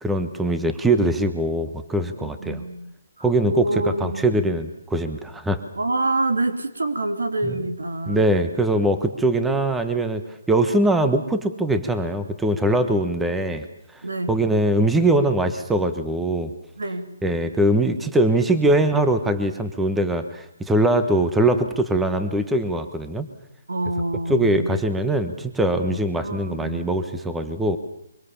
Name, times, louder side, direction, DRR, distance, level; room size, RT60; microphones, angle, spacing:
voice 1, 0.0-2.6 3.2-5.6 8.1-13.7 14.3-16.5 17.2-23.3 24.3-27.8, right 1 dB, 5° right, 9 dB, 1.2 m, -22 dB
voice 2, 2.2-4.6 5.7-8.3 14.0-14.3 16.8-17.1 23.7-24.8 25.9-26.9, right 2 dB, 90° right, 8 dB, 2.9 m, -27 dB
24.0 x 23.5 x 7.1 m, 0.75 s
hypercardioid pair, 155°, 0 cm